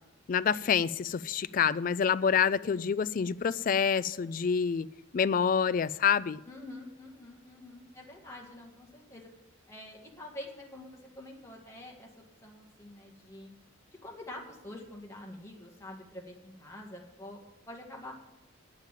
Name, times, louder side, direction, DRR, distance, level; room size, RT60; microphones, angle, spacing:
voice 1, 0.3-4.9 5.1-6.4, left 7 dB, 45° left, 0.3 m, -27 dB
voice 2, 6.5-9.3 9.7-13.5 14.0-17.4 17.7-18.1, left 1 dB, 15° left, 1.8 m, -46 dB
9.0 x 7.3 x 9.0 m
head